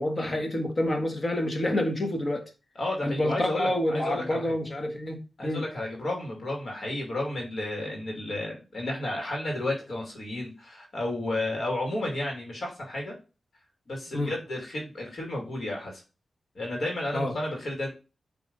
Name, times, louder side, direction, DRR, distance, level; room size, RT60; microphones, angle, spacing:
voice 1, 0.0-2.5 3.0-5.6 14.1-14.3 17.1-17.3, left 1 dB, 35° left, 1.4 m, -28 dB
voice 2, 2.8-4.5 5.4-13.1 13.9-16.0 16.5-17.9, left 1 dB, 60° left, 2.3 m, -32 dB
8.9 x 3.4 x 3.9 m
wide cardioid pair, 115°, 0 cm